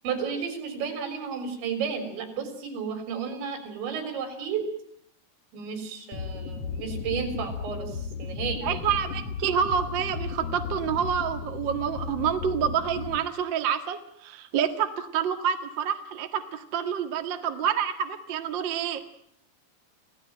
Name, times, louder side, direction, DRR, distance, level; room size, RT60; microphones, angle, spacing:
voice 1, 0.0-4.6 5.5-8.8, right 6 dB, 85° right, 8 dB, 6.2 m, -33 dB
sound 1, 6.1-13.2, left 5 dB, 60° left, 1.7 m, -35 dB
voice 2, 8.6-19.1, right 8 dB, 65° right, 6 dB, 1.1 m, -28 dB
27.5 x 17.0 x 8.9 m, 0.69 s
omnidirectional pair, 5.1 m